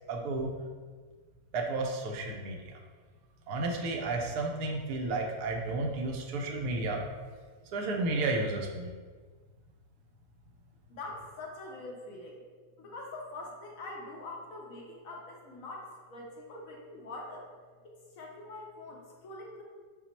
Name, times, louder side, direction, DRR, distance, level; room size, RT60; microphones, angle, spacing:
voice 1, 0.1-0.5 1.5-2.6 3.5-7.0 7.7-8.9, right 2 dB, 85° right, 1 dB, 1.2 m, -32 dB
voice 2, 10.9-12.4 12.8-17.5 17.8-19.6, left 2 dB, 65° left, -2 dB, 1.1 m, -44 dB
5.8 x 2.0 x 4.3 m, 1.5 s
omnidirectional pair, 1.7 m